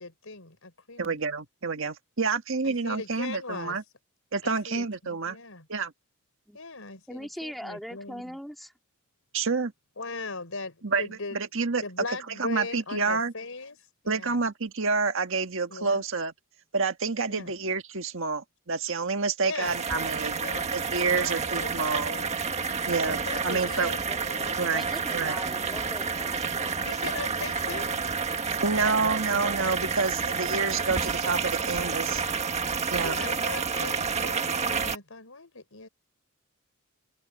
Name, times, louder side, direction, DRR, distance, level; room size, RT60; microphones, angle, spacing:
voice 1, 0.0-1.2 2.6-3.8 4.4-5.7 6.5-8.4 10.0-11.4 11.8-13.8 14.0-14.4 15.7-16.0 17.3-17.5 19.4-19.8 20.4-20.7 21.0-22.3 23.1-24.7 26.8-27.9 33.0-35.9, left 3 dB, 70° left, 5.2 m, -39 dB
voice 2, 1.0-3.8 4.3-5.4 5.7-5.9 9.3-9.7 10.8-11.8 12.4-13.3 14.1-16.3 16.7-20.4 20.7-22.1 22.9-23.2 23.4-23.9 24.6-24.8 25.1-25.3 28.6-32.2 32.9-33.2, right 4 dB, 65° right, 1.7 m, -28 dB
voice 3, 7.1-8.7 24.0-26.9 27.1-27.2, equal, ahead, 2.9 m, -41 dB
sound 1, 19.6-35.0, right 5 dB, 30° right, 1.6 m, -29 dB
head